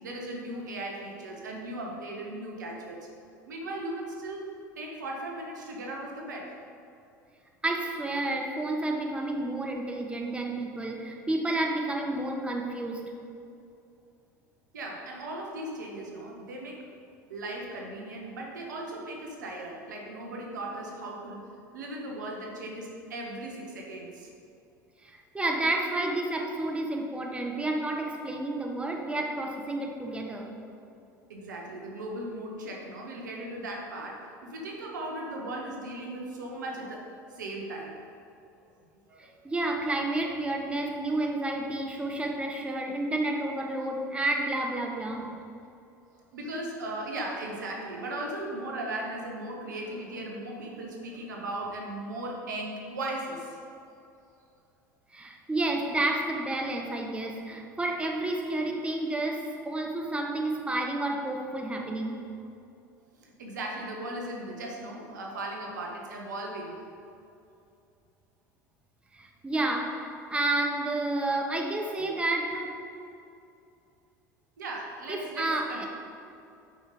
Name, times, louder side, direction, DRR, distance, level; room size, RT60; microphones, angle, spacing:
voice 1, 0.0-3.1 3.5-4.4 4.8-6.6 14.7-16.9 17.3-21.4 21.7-24.3 31.3-38.0 39.1-39.3 46.3-53.6 63.1-66.8 74.6-75.9, right 1 dB, 80° right, -1 dB, 1.4 m, -37 dB
voice 2, 7.6-13.0 25.0-30.5 39.2-45.3 55.1-62.2 69.1-72.7 75.1-75.9, right 2 dB, 10° right, 1 dB, 1.1 m, -30 dB
8.2 x 5.4 x 5.1 m, 2.6 s
hypercardioid pair, 75°, 10 cm